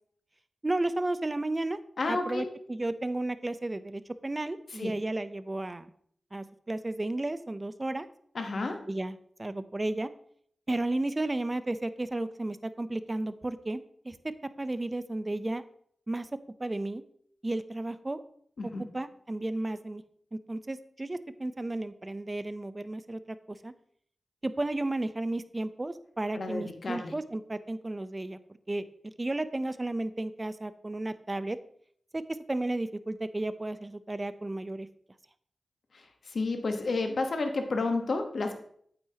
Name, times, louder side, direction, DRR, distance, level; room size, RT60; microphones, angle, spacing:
voice 1, 0.6-1.8 2.1-5.9 6.3-8.1 8.9-10.1 10.7-14.2 14.6-15.6 16.1-16.3 16.6-17.0 17.4-18.2 18.9-20.0 20.3-23.7 24.4-28.4 28.7-31.6 32.1-34.9, right 2 dB, 30° right, 13 dB, 0.6 m, -33 dB
voice 2, 2.0-2.5 4.8-4.9 8.3-8.9 18.6-18.8 26.3-27.1 35.9-38.5, left 3 dB, 70° left, 5 dB, 1.1 m, -31 dB
8.9 x 7.9 x 2.9 m, 0.64 s
cardioid pair, 60°, 0 cm